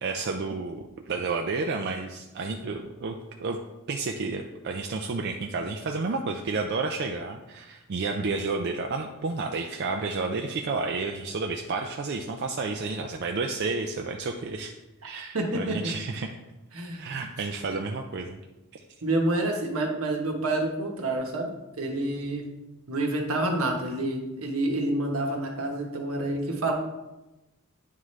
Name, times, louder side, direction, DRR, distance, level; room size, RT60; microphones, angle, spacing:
voice 1, 0.0-3.6 3.9-14.7 15.0-16.3 16.9-18.4, right 3 dB, 50° right, 3 dB, 0.4 m, -31 dB
voice 2, 15.3-15.9 16.7-17.1 17.7-17.8 19.0-21.5 21.8-22.4 22.9-26.7, right 2 dB, 80° right, 2 dB, 1.1 m, -28 dB
9.3 x 3.7 x 3.2 m, 1.0 s
head